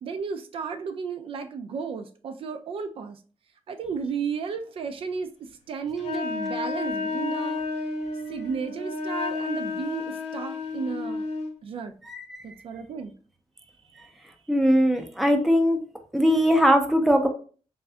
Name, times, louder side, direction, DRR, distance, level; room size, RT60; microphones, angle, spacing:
voice 1, 0.0-3.2 3.7-7.6 8.3-11.2 11.6-11.9 12.4-13.1 13.9-14.1, right 6 dB, 55° right, 0.4 m, -33 dB
Wind instrument woodwind instrument, 6.0-11.5, left 4 dB, 75° left, 0.8 m, -31 dB
voice 2, 12.0-12.5 14.5-15.8 16.1-17.3, equal, ahead, 0.5 m, -20 dB
3.5 x 2.6 x 3.3 m
wide cardioid pair, 160°, 11 cm